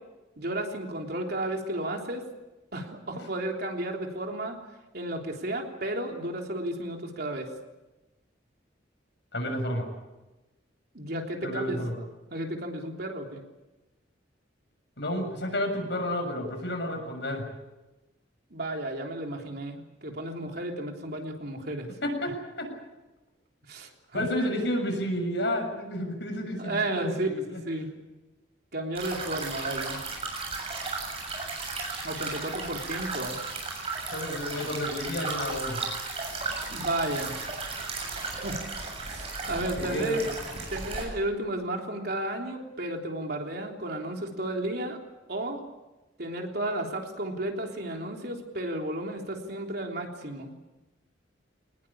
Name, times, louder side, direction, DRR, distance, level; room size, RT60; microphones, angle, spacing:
voice 1, 0.4-2.2 2.7-4.6 4.9-7.5 10.9-11.8 12.3-13.4 18.5-21.9 23.7-24.2 26.6-27.9 28.7-30.0 32.0-33.4 36.7-37.3 38.4-38.6 39.0-40.3 40.7-45.0 45.3-45.6 46.2-50.5, right 1 dB, 55° right, 2 dB, 3.5 m, -33 dB
voice 2, 9.3-9.8 11.4-12.0 15.0-17.5 22.0-22.7 24.1-27.6 34.1-35.8 39.8-40.2, left 1 dB, 65° left, 4 dB, 7.0 m, -31 dB
sound 1, 29.0-41.0, right 3 dB, 30° right, 7.3 m, -35 dB
24.5 x 19.5 x 8.7 m, 1.1 s
head